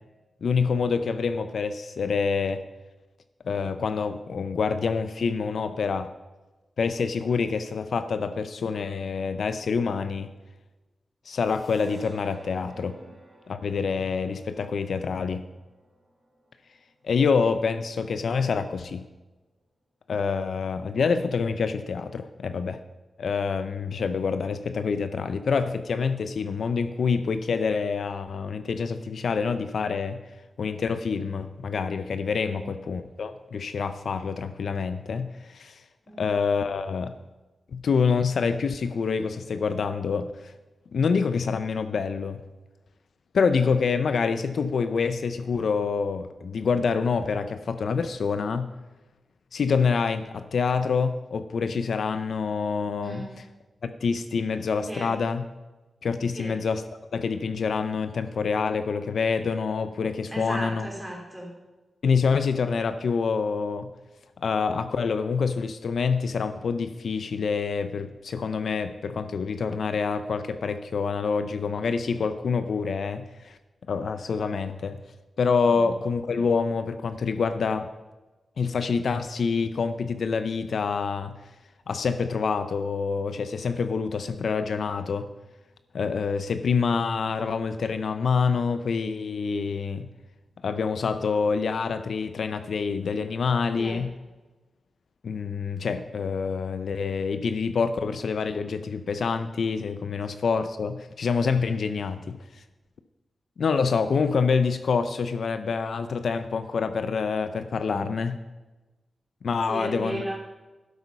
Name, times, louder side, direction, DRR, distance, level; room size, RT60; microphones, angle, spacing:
voice 1, 0.4-2.6 3.4-6.1 6.8-10.3 11.3-13.0 13.5-15.5 17.0-19.1 20.1-22.8 23.2-30.2 30.6-35.8 36.2-37.1 37.7-40.5 40.9-42.4 43.3-48.7 49.5-53.2 53.8-55.4 56.0-56.8 57.1-60.9 62.0-63.9 64.4-73.6 73.9-75.0 75.4-77.9 78.6-81.4 81.9-85.3 85.9-90.1 90.6-94.1 95.2-102.6 103.6-108.4 109.4-110.2, left 5 dB, 70° left, 10 dB, 0.6 m, -26 dB
sound 1, 11.4-18.6, right 1 dB, 35° right, 4.1 m, -55 dB
voice 2, 12.7-13.1 32.4-32.7 36.1-36.3 53.0-53.4 54.9-55.1 56.3-56.5 60.3-61.5 75.6-75.9 93.8-94.0 107.9-108.1 109.7-110.4, right 1 dB, 10° right, -1 dB, 3.1 m, -36 dB
12.0 x 8.0 x 5.4 m, 1.2 s
wide cardioid pair, 130°, 0 cm